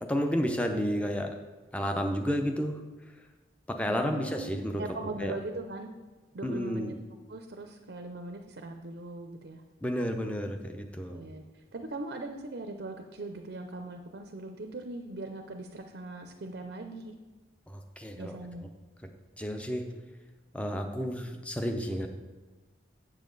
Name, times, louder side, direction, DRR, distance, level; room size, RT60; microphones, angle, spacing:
voice 1, 0.0-1.4 1.7-2.8 3.7-4.8 5.2-5.4 6.4-7.0 9.8-11.2 17.7-18.7 19.4-19.9 20.5-22.1, equal, 5° left, 5 dB, 0.5 m, -31 dB
voice 2, 3.9-5.9 6.3-6.9 7.3-9.6 11.1-11.4 11.7-17.1 18.2-18.7, right 2 dB, 60° right, 5 dB, 0.5 m, -40 dB
7.4 x 7.3 x 3.9 m, 1.3 s
head